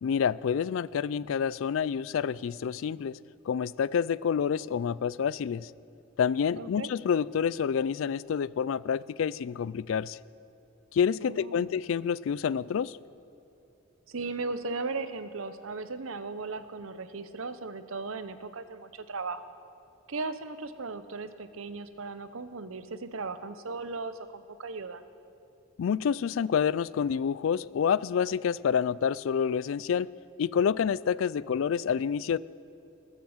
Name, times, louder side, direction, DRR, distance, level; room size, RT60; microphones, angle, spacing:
voice 1, 0.0-3.2 3.5-5.7 6.2-10.2 10.9-13.0 25.8-30.1 30.4-32.4, left 7 dB, 75° left, 20 dB, 0.3 m, -28 dB
voice 2, 6.6-6.9 11.2-11.7 14.1-19.4 20.1-25.0, right 3 dB, 85° right, 11 dB, 0.8 m, -37 dB
20.5 x 8.2 x 7.3 m, 2.7 s
head